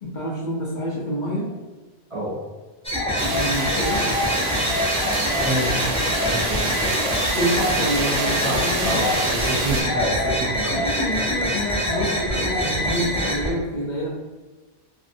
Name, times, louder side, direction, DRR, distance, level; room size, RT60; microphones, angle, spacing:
voice 1, 0.0-1.5 3.3-4.0 7.3-9.0 10.7-14.1, equal, 50° left, -4 dB, 0.6 m, -27 dB
sound 1, 2.8-13.5, equal, 10° left, 0.5 m, -24 dB
sound 2, 3.2-9.8, right 2 dB, 70° right, 0.9 m, -27 dB
voice 2, 5.4-5.8 6.2-6.8 8.4-10.7, right 1 dB, 45° right, -5 dB, 0.5 m, -27 dB
3.2 x 2.6 x 2.6 m, 1.2 s
omnidirectional pair, 1.1 m